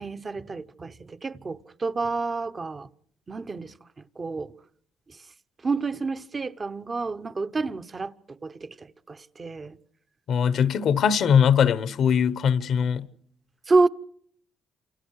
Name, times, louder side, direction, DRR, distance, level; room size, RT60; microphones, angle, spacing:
voice 1, 0.0-2.9 3.3-4.5 5.1-5.2 5.6-9.8 13.7-13.9, right 3 dB, 35° right, 1.0 m, -29 dB
voice 2, 10.3-13.1, left 7 dB, 70° left, 1.1 m, -21 dB
29.0 x 27.5 x 4.8 m
cardioid pair, 90°, 0 cm